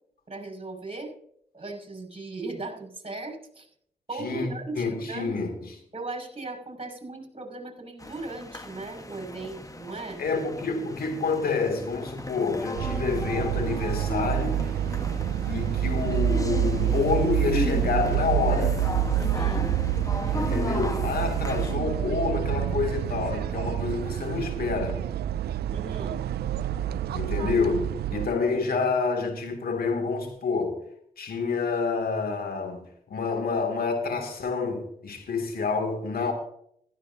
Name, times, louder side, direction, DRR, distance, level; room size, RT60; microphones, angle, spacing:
voice 1, 0.3-1.1 1.5-3.7 4.1-5.4 5.9-10.2 19.1-19.8 25.7-26.2, right 3 dB, 35° right, 6.1 m, -37 dB
voice 2, 4.2-4.5 4.8-5.5 10.2-14.6 15.4-18.8 20.3-25.0 27.1-30.8 31.2-32.8 33.1-36.3, left 4 dB, 70° left, 2.7 m, -28 dB
sound 1, 8.0-21.7, left 2 dB, 20° left, 1.4 m, -36 dB
sound 2, 12.7-28.3, right 10 dB, 85° right, 0.5 m, -27 dB
16.0 x 14.0 x 2.8 m
supercardioid pair, 45°, 16 cm